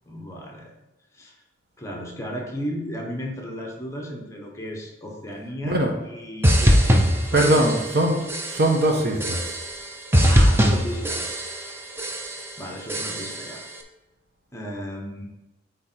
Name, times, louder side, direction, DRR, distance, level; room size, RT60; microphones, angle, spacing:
voice 1, 0.1-0.7 1.1-1.3 1.8-7.8 10.3-11.4 12.6-13.6 14.5-15.3, equal, 15° left, 0 dB, 1.0 m, -35 dB
sound 1, 6.4-8.0 8.3-8.8 9.2-9.8 10.1-11.7 12.0-12.5 12.9-13.5, equal, 10° right, 0.6 m, -21 dB
voice 2, 7.3-9.4, right 1 dB, 55° right, 1 dB, 1.1 m, -21 dB
8.5 x 3.8 x 4.4 m, 0.99 s
head